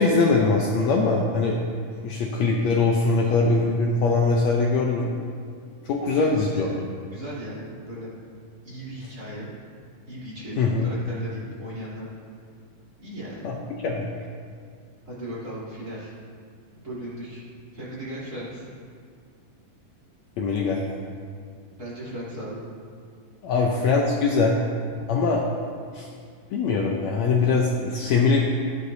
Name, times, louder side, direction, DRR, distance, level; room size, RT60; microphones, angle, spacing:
voice 1, 0.0-1.6 2.0-5.1 5.9-6.7 10.6-10.9 13.4-13.6 13.8-14.1 20.4-21.0 23.4-24.6 25.1-25.5 25.9-26.1 26.5-28.4, left 4 dB, 85° left, -1 dB, 1.5 m, -22 dB
voice 2, 3.2-3.5 5.8-8.1 8.6-9.5 10.1-12.1 13.0-13.6 15.0-16.1 16.7-17.4 17.7-18.7 21.8-22.7 23.5-23.7 25.0-25.1, right 1 dB, 25° right, -9 dB, 3.2 m, -37 dB
16.0 x 9.6 x 2.7 m, 2.2 s
omnidirectional pair, 4.1 m